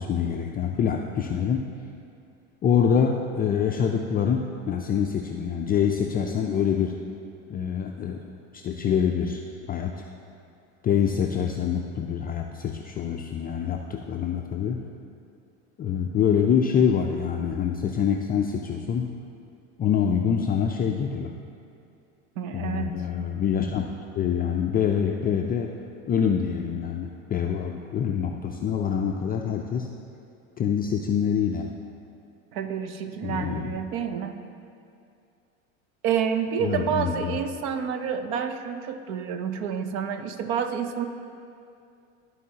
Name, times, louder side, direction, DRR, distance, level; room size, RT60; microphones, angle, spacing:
voice 1, 0.0-1.6 2.6-6.9 7.5-8.2 8.5-9.4 9.7-9.9 10.8-14.8 15.8-19.1 19.8-21.3 22.5-23.9 24.2-25.7 26.1-29.9 30.6-31.7 33.2-33.8 36.6-37.4, left 7 dB, 25° left, 2 dB, 0.4 m, -25 dB
voice 2, 22.4-23.0 32.5-34.4 36.0-41.1, right 7 dB, 60° right, 8 dB, 0.8 m, -29 dB
13.0 x 4.6 x 2.8 m, 2.5 s
hypercardioid pair, 90°, 38 cm